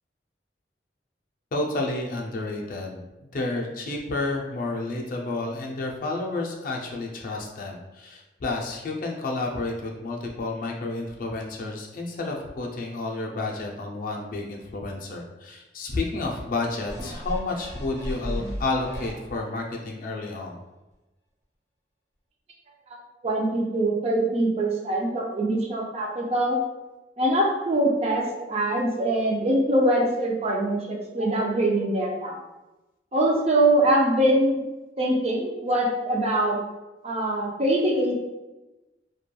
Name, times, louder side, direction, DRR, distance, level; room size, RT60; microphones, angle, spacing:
voice 1, 1.5-3.0 3.3-20.6, left 2 dB, 50° left, 0 dB, 0.4 m, -30 dB
sound 1, 16.9-19.6 20.1-20.2, equal, 15° left, 1.1 m, -34 dB
voice 2, 23.2-26.6 27.2-32.4 33.1-34.6 35.0-36.6 37.0-38.1, right 1 dB, 35° right, -1 dB, 0.4 m, -23 dB
3.0 x 2.2 x 2.2 m, 1.1 s
head